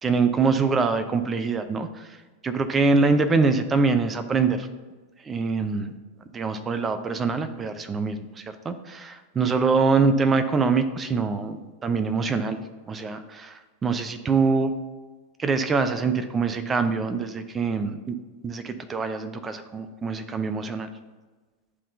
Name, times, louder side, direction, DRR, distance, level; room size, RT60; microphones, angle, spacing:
voice 1, 0.0-2.2 2.4-4.7 5.2-5.9 6.3-12.6 12.9-14.7 15.4-18.2 18.4-20.9, right 4 dB, 20° right, 9 dB, 0.5 m, -24 dB
10.5 x 3.6 x 2.7 m, 1.3 s
figure-of-eight pair, 90°, 0 cm